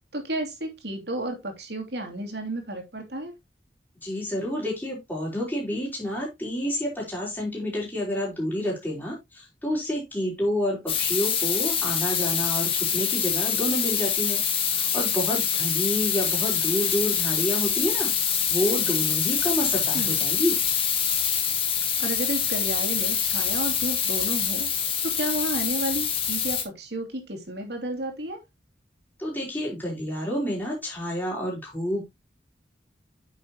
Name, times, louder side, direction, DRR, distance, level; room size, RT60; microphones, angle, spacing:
voice 1, 0.1-3.3 19.9-20.1 22.0-28.4, right 1 dB, 70° right, 2.8 m, -32 dB
voice 2, 4.0-18.1 18.5-20.6 29.2-32.0, equal, 10° left, 5.0 m, -29 dB
sound 1, 10.9-26.6, left 8 dB, 30° left, 1.8 m, -25 dB
9.6 x 6.8 x 3.0 m
head